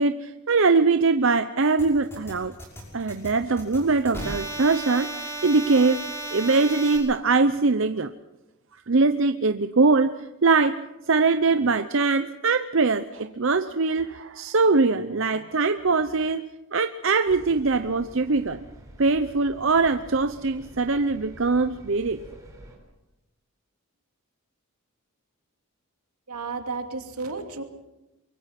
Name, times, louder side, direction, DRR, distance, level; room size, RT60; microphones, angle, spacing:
voice 1, 0.0-2.5 2.9-6.0 6.3-8.1 8.9-18.6 19.0-22.2, right 4 dB, 60° right, 9 dB, 0.7 m, -22 dB
sound 1, 1.8-7.0, right 1 dB, 10° left, 5.7 m, -35 dB
sound 2, 17.3-22.8, equal, 15° right, 4.6 m, -47 dB
voice 2, 26.3-27.6, right 4 dB, 85° right, 5 dB, 2.7 m, -32 dB
24.0 x 23.5 x 5.9 m, 1.0 s
head